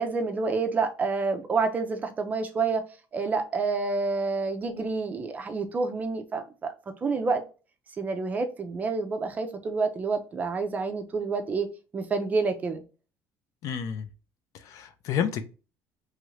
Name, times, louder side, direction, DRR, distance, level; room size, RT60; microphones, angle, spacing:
voice 1, 0.0-2.8 3.1-6.7 7.0-7.4 8.0-12.8, right 4 dB, 20° right, 0.4 m, -28 dB
voice 2, 13.6-14.1 14.5-15.4, left 8 dB, 50° left, 0.4 m, -30 dB
3.1 x 2.4 x 3.1 m
cardioid pair, 170°, 7 cm